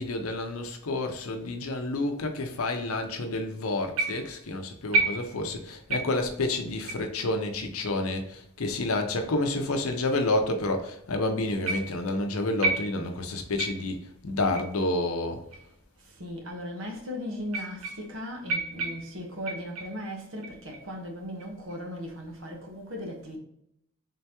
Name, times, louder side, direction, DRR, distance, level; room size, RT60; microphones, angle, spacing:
voice 1, 0.0-14.0 14.2-15.4, left 2 dB, 75° left, 0.7 m, -29 dB
sound 1, 4.0-4.4 4.9-5.6 5.9-6.3 6.9-7.1 7.8-7.9 8.8-8.9 9.8-9.9 11.7-12.1 12.6-13.2 13.6-14.0 14.6-14.8 15.5-15.6 16.5-16.6 17.5-18.2 18.5-20.0 20.4-20.9 21.4-21.8, right 3 dB, 80° right, 0.8 m, -31 dB
voice 2, 16.2-23.4, equal, 60° right, 1.1 m, -37 dB
3.7 x 3.4 x 2.8 m
head